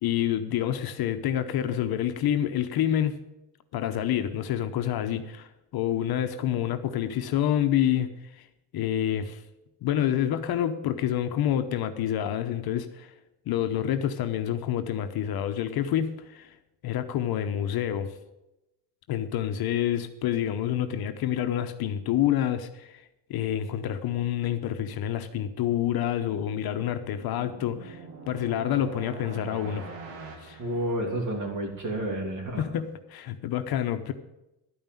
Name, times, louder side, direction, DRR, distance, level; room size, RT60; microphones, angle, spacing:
voice 1, 0.0-3.2 3.7-5.5 5.7-8.1 8.7-9.4 9.8-13.1 13.5-16.5 16.8-18.1 19.1-23.0 23.3-28.0 28.3-29.9 30.4-30.6 32.6-34.1, left 10 dB, 50° left, 9 dB, 0.9 m, -28 dB
sound 1, 26.7-31.6, right 4 dB, 70° right, 1.9 m, -44 dB
voice 2, 30.6-32.6, right 1 dB, 40° right, 3 dB, 2.9 m, -30 dB
12.0 x 5.5 x 9.0 m, 0.93 s
cardioid pair, 115°, 46 cm